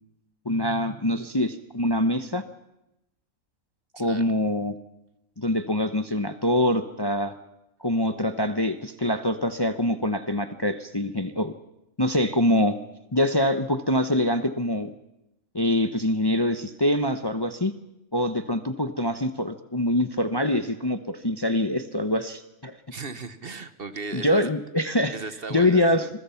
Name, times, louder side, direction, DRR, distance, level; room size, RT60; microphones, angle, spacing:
voice 1, 0.4-2.4 4.0-4.7 5.4-7.3 7.8-11.5 12.0-12.8 13.1-14.9 15.5-17.7 18.1-22.8 24.1-25.1 25.5-26.0, left 1 dB, 20° left, 9 dB, 0.8 m, -24 dB
voice 2, 4.0-4.3 22.9-24.5 25.1-26.1, right 4 dB, 45° right, 11 dB, 1.2 m, -36 dB
26.5 x 22.5 x 5.8 m, 0.89 s
omnidirectional pair, 1.4 m